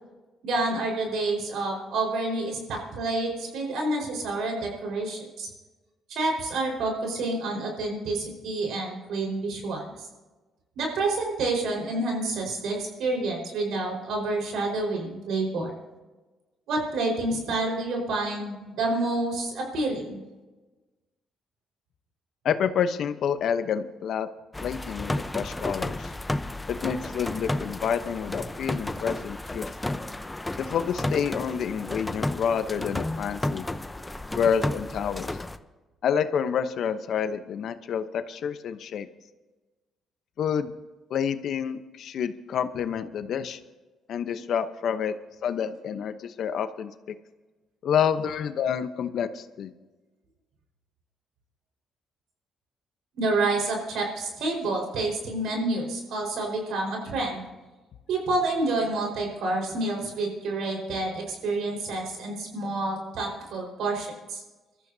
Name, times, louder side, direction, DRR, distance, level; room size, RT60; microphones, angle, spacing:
voice 1, 0.4-5.5 6.1-9.9 10.8-15.7 16.7-20.2 53.2-57.4 58.1-64.4, right 2 dB, 80° right, 1 dB, 4.6 m, -28 dB
voice 2, 22.4-24.3 24.6-26.1 26.7-29.7 30.6-33.7 34.3-35.4 36.0-39.1 40.4-40.7 41.1-43.6 44.1-45.1 45.4-47.1 47.8-49.7, left 7 dB, 70° left, 11 dB, 0.8 m, -28 dB
sound 1, 24.5-35.6, left 1 dB, 15° left, 0.7 m, -32 dB
23.5 x 13.5 x 2.8 m, 1.2 s
cardioid pair, 80°, 0 cm